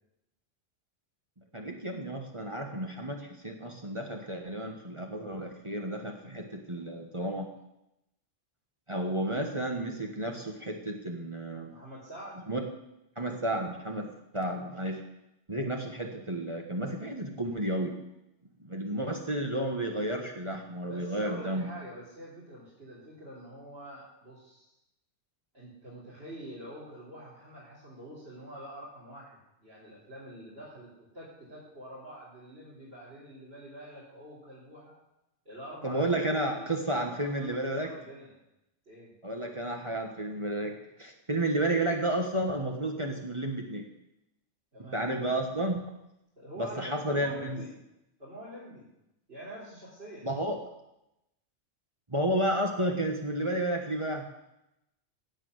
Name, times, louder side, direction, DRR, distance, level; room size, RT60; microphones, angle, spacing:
voice 1, 1.5-7.5 8.9-11.7 12.5-12.6 13.2-14.1 14.3-15.0 15.5-17.9 18.6-21.6 35.8-37.9 39.2-43.9 44.9-45.8 46.6-47.6 50.2-50.5 52.1-54.2, right 1 dB, 25° right, 1 dB, 1.4 m, -32 dB
voice 2, 11.7-12.4 20.8-24.7 25.5-34.9 35.5-36.7 37.0-38.3 38.9-39.1 44.7-45.1 46.4-47.7 48.2-48.9 49.3-50.3, right 1 dB, 55° right, -8 dB, 3.9 m, -46 dB
17.0 x 6.0 x 8.0 m, 0.89 s
omnidirectional pair, 1.3 m